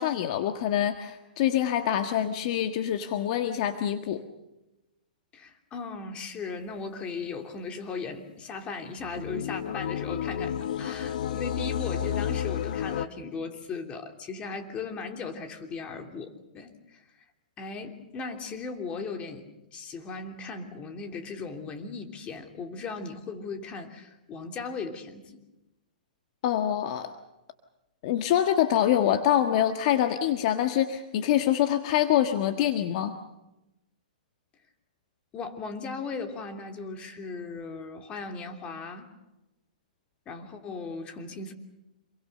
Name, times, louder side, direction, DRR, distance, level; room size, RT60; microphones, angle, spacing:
voice 1, 0.0-4.2 26.4-27.1 28.0-33.1, left 11 dB, 50° left, 7 dB, 1.6 m, -25 dB
voice 2, 5.3-17.0 17.6-25.4 35.3-39.1 40.3-41.5, left 4 dB, 25° left, 5 dB, 3.0 m, -37 dB
sound 1, 9.0-13.1, left 9 dB, 65° left, 1.4 m, -31 dB
27.5 x 22.5 x 6.7 m, 0.97 s
hypercardioid pair, 135°, 5 cm